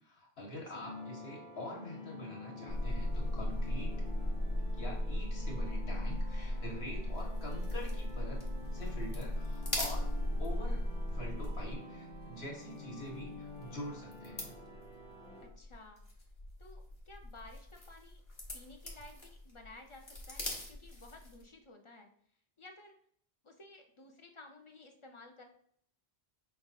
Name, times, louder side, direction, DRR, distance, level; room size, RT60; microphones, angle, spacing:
voice 1, 0.0-3.9 4.7-8.4 8.7-10.1 10.4-10.8 11.1-14.5, left 1 dB, 75° left, -2 dB, 1.5 m, -45 dB
sound 1, 0.8-15.5, left 3 dB, 5° left, 0.7 m, -49 dB
sound 2, 2.7-11.7, left 1 dB, 25° right, 0.4 m, -36 dB
sound 3, 7.1-21.5, left 1 dB, 35° left, 1.1 m, -47 dB
voice 2, 15.4-16.0 16.6-18.2 18.5-22.1 22.6-23.0 23.4-25.4, left 2 dB, 50° left, 3 dB, 0.4 m, -54 dB
5.1 x 2.4 x 3.9 m, 0.65 s
omnidirectional pair, 1.1 m